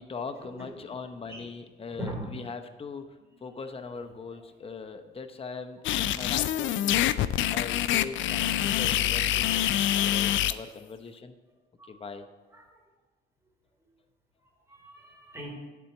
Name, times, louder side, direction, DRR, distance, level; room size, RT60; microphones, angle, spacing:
voice 1, 0.0-11.3 11.9-12.3, left 5 dB, 30° left, 6 dB, 0.8 m, -41 dB
voice 2, 1.9-2.4 11.8-11.9 12.5-12.6 14.7-15.5, right 1 dB, 15° right, -2 dB, 3.1 m, -39 dB
sound 1, 5.8-10.5, left 12 dB, 75° left, 0.4 m, -26 dB
10.0 x 4.4 x 7.1 m, 1.3 s
cardioid pair, 90°, 20 cm